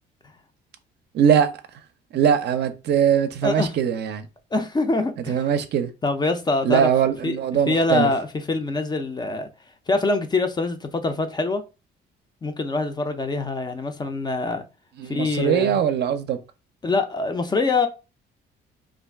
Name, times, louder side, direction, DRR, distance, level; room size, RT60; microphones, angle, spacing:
voice 1, 1.1-1.5 2.1-4.3 5.3-5.9 6.6-8.1 15.0-16.4, right 8 dB, 60° right, 0.5 m, -21 dB
voice 2, 3.4-3.7 4.5-5.4 6.0-7.4 7.7-9.5 9.9-11.6 12.4-14.6 15.1-15.8 16.8-17.9, left 3 dB, 20° left, 0.4 m, -24 dB
2.4 x 2.3 x 3.3 m
cardioid pair, 90°, 20 cm